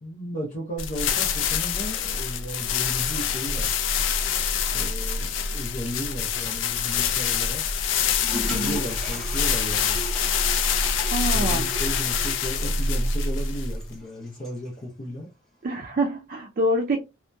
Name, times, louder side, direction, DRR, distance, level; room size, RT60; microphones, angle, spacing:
voice 1, 0.0-3.7 4.7-7.6 8.4-10.0 11.2-15.3, equal, 45° left, 0.7 m, -35 dB
sound 1, 0.8-13.9, left 6 dB, 85° left, 0.4 m, -25 dB
Toilet flush, 7.8-14.8, equal, ahead, 0.7 m, -39 dB
voice 2, 8.5-8.8 11.1-11.7 15.6-17.0, right 1 dB, 45° right, 0.3 m, -26 dB
2.7 x 2.1 x 2.2 m
head